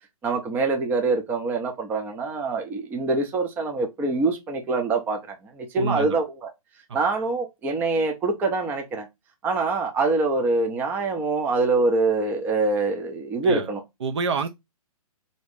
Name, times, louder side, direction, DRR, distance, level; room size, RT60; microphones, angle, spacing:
voice 1, 0.2-6.5 6.9-9.1 9.4-13.8, right 3 dB, 10° right, 0.5 m, -24 dB
voice 2, 5.8-6.2 6.9-7.0 13.4-13.7 14.0-14.5, right 5 dB, 50° right, 0.7 m, -27 dB
3.9 x 2.8 x 4.8 m
figure-of-eight pair, 125°, 19 cm